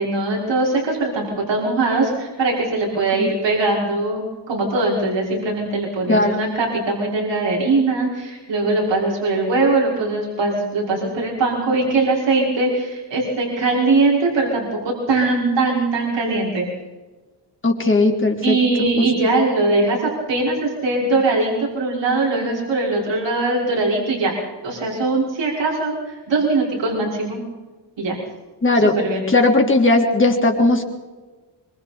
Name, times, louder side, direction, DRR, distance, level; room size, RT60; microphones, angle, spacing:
voice 1, 0.0-16.7 18.4-24.3 24.6-27.4 28.0-28.2 29.0-29.2, right 3 dB, 85° right, -3 dB, 5.9 m, -21 dB
voice 2, 6.1-6.4 17.6-18.9 28.6-29.0 29.3-30.8, left 2 dB, 30° left, 1 dB, 3.5 m, -17 dB
25.5 x 25.0 x 4.4 m, 1.2 s
wide cardioid pair, 160°, 43 cm